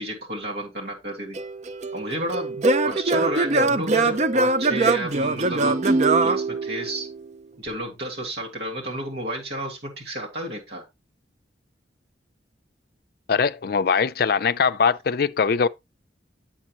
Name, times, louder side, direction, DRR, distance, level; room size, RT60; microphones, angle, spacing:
voice 1, 0.0-1.4 1.9-2.6 2.8-6.0 6.2-7.1 7.6-10.8, right 1 dB, 60° right, 2.2 m, -31 dB
Singing / Plucked string instrument, 1.4-7.2, right 3 dB, 40° right, 0.5 m, -22 dB
voice 2, 13.3-15.7, left 5 dB, 55° left, 0.4 m, -21 dB
8.6 x 7.2 x 2.9 m
head